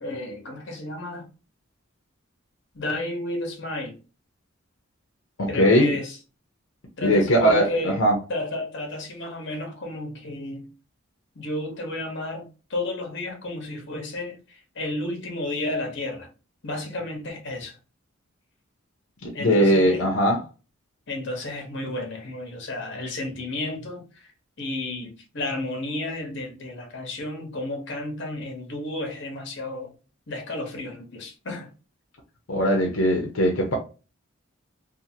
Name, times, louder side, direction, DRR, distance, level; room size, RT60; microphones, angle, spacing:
voice 1, 0.0-1.3 2.7-4.0 5.5-6.2 7.0-10.7 11.3-16.3 16.6-17.8 19.3-20.0 21.1-24.3 24.6-29.9 30.3-31.7 32.6-32.8, left 2 dB, 60° left, 0.9 m, -32 dB
voice 2, 5.4-5.9 7.0-8.1 19.2-20.4 32.5-33.8, equal, 80° left, 0.6 m, -20 dB
2.6 x 2.5 x 2.6 m
head